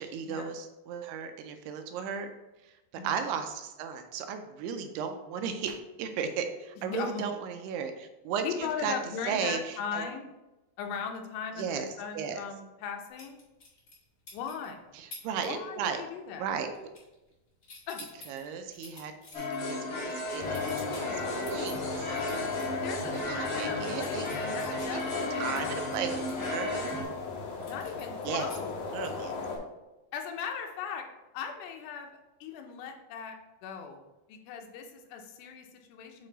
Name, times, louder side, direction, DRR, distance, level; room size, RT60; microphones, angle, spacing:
voice 1, 0.0-2.3 2.6-2.8 3.0-8.9 9.3-10.0 11.6-11.9 12.1-12.4 14.9-16.0 16.4-16.9 18.3-22.1 23.1-25.1 25.4-26.1 26.4-27.1 28.3-28.5 28.9-29.3, right 7 dB, 80° right, 7 dB, 2.5 m, -35 dB
voice 2, 6.8-7.3 8.4-10.3 10.8-13.4 14.3-14.8 15.4-16.5 17.9-18.0 22.7-25.7 26.0-26.7 27.6-28.7 30.1-31.1 31.3-34.0 34.3-36.3, left 6 dB, 80° left, 4 dB, 2.7 m, -38 dB
sound 1, 13.2-14.0 14.3-14.7 15.1-15.5 15.8-16.1 16.3-17.3 17.6-22.7 23.1-23.2 23.5-27.0 27.6-29.3, left 2 dB, 30° left, 1.6 m, -49 dB
sound 2, 19.3-27.0, left 2 dB, 50° left, 2.8 m, -34 dB
sound 3, 20.4-29.6, left 4 dB, 65° left, 2.6 m, -37 dB
8.6 x 3.3 x 3.9 m, 1.0 s
omnidirectional pair, 4.8 m